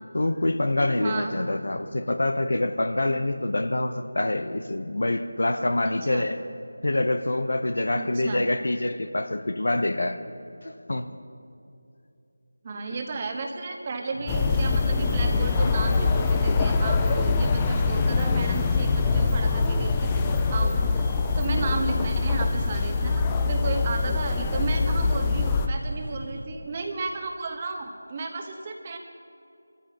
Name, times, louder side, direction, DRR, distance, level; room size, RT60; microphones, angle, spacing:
voice 1, 0.1-6.4 6.8-10.2 10.6-11.1 21.5-21.6, left 1 dB, 70° left, 8 dB, 0.9 m, -26 dB
voice 2, 1.0-1.3 5.8-6.2 7.9-8.4 12.6-20.1 20.5-20.7 21.3-29.0, right 3 dB, 30° right, 3 dB, 1.2 m, -33 dB
sound 1, 14.1-26.5, right 1 dB, 60° right, 1.5 m, -38 dB
sound 2, 14.3-25.7, left 4 dB, 15° left, 0.5 m, -24 dB
23.0 x 14.0 x 3.0 m, 2.7 s
figure-of-eight pair, 165°, 0 cm